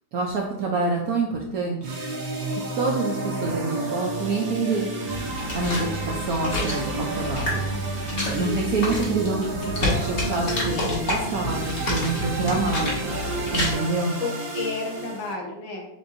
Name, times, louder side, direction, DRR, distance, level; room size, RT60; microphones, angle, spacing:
voice 1, 0.1-2.0 2.8-4.9 5.5-7.6 8.3-12.9 13.5-14.2, right 3 dB, 70° right, 0 dB, 0.8 m, -26 dB
sound 1, 1.8-15.3, right 2 dB, 90° right, 1.7 m, -31 dB
sound 2, 5.1-13.7, left 1 dB, 40° left, 1.2 m, -29 dB
voice 2, 8.2-8.7 12.5-13.1 14.2-15.9, left 4 dB, 85° left, 0 dB, 1.7 m, -33 dB
6.8 x 2.6 x 2.5 m, 0.78 s
omnidirectional pair, 2.0 m